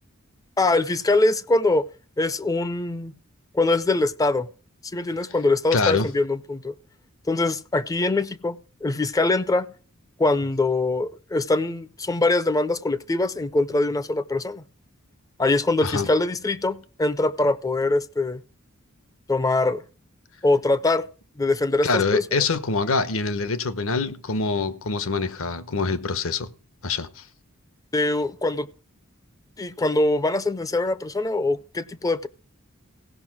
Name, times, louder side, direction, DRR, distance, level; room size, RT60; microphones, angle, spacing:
voice 1, 0.6-1.8 2.2-3.1 3.5-4.5 4.9-6.7 7.3-9.7 10.2-14.6 15.4-18.4 19.3-19.8 20.4-21.1 21.4-22.2 27.9-28.7 29.6-32.3, left 2 dB, 15° left, 0.4 m, -23 dB
voice 2, 5.7-6.1 15.8-16.1 21.8-26.5 26.8-27.2, left 4 dB, 65° left, 1.0 m, -25 dB
16.0 x 5.6 x 6.0 m
head